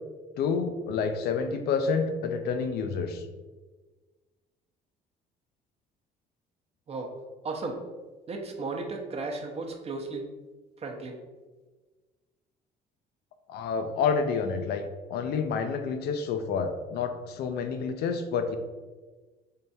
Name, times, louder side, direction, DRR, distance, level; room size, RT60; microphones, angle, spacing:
voice 1, 0.4-3.3 13.5-14.8 15.1-18.6, left 5 dB, 70° left, 8 dB, 0.6 m, -29 dB
voice 2, 7.4-7.8 8.3-10.3 10.8-11.2, right 3 dB, 35° right, 2 dB, 0.8 m, -34 dB
3.7 x 3.3 x 4.1 m, 1.3 s
cardioid pair, 110°, 17 cm